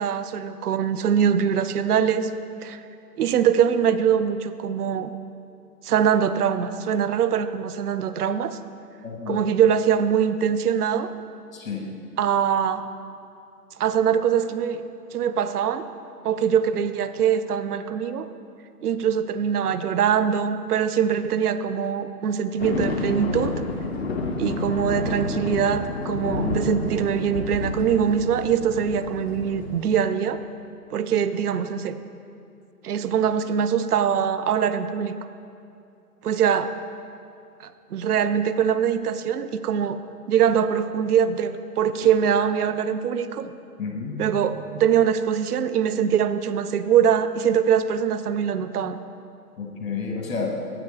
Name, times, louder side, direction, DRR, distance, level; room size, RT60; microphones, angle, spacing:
voice 1, 0.0-2.3 2.6-2.8 3.2-5.1 5.8-8.6 9.3-11.1 12.2-12.8 13.8-14.8 15.1-15.9 16.2-18.3 18.8-23.6 24.4-30.4 30.9-32.0 32.8-35.1 36.2-36.7 37.9-40.0 40.3-43.5 44.2-49.0, right 8 dB, 75° right, 11 dB, 0.5 m, -23 dB
voice 2, 9.0-9.4 11.5-11.9 43.8-44.2 49.6-50.5, left 5 dB, 60° left, 0 dB, 1.7 m, -30 dB
sound 1, 22.6-29.9, left 3 dB, 40° left, 0.8 m, -30 dB
9.7 x 7.7 x 3.3 m, 2.6 s
figure-of-eight pair, 145°, 46 cm